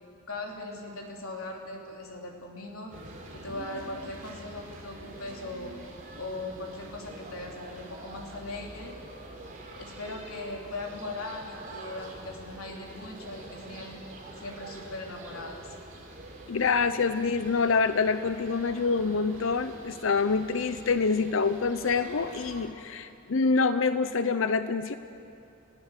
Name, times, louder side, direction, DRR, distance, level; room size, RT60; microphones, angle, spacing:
voice 1, 0.3-2.9 3.3-5.7 6.1-8.9 9.8-14.0 14.4-15.7, left 2 dB, 90° left, 0 dB, 3.4 m, -39 dB
sound 1, 2.9-22.7, right 1 dB, 40° right, 3.8 m, -45 dB
voice 2, 16.5-24.9, left 4 dB, 65° left, 12 dB, 0.6 m, -26 dB
30.0 x 17.5 x 6.6 m, 2.6 s
head